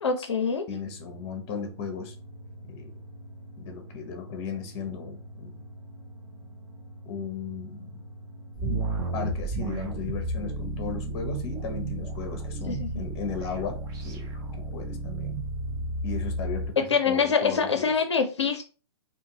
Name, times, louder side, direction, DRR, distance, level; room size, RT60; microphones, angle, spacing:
voice 1, 0.0-0.6 12.7-12.9 16.9-18.6, left 5 dB, 80° left, 0.4 m, -25 dB
voice 2, 0.7-2.1 2.7-2.9 3.6-5.6 7.0-8.0 8.6-14.3 14.6-15.3 16.0-17.9, left 5 dB, 35° left, 0.7 m, -36 dB
sound 1, 0.8-16.9, right 1 dB, 90° right, 0.8 m, -46 dB
sound 2, 8.5-16.7, right 2 dB, 25° right, 0.6 m, -32 dB
2.5 x 2.4 x 2.8 m
figure-of-eight pair, 115°, 14 cm